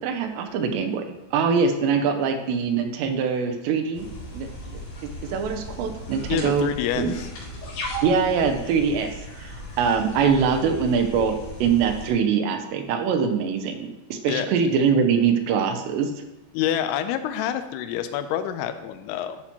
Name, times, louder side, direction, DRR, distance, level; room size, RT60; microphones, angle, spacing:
voice 1, 0.0-4.1 4.3-4.8 5.3-6.7 7.0-7.2 8.0-11.4 11.6-16.1, right 6 dB, 80° right, 5 dB, 2.7 m, -23 dB
sound 1, 3.9-12.1, equal, 60° left, 4.0 m, -37 dB
voice 2, 6.3-7.3 14.3-14.5 16.5-19.4, left 10 dB, 85° left, 8 dB, 2.4 m, -27 dB
11.0 x 5.7 x 2.9 m, 0.94 s
omnidirectional pair, 5.2 m